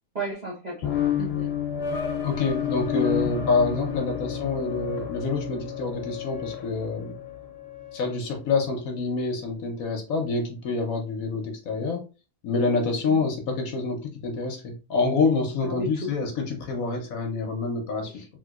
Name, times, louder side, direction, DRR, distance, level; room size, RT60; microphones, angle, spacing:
voice 1, 0.1-1.5 13.1-13.2 15.6-16.1 18.1-18.3, right 2 dB, 50° right, -5 dB, 0.5 m, -34 dB
sound 1, 0.8-8.1, left 9 dB, 90° left, 1.2 m, -30 dB
voice 2, 2.2-7.1 7.9-12.0 12.4-18.2, left 4 dB, 65° left, 3 dB, 1.0 m, -27 dB
3.2 x 2.9 x 2.3 m, 0.32 s
omnidirectional pair, 1.8 m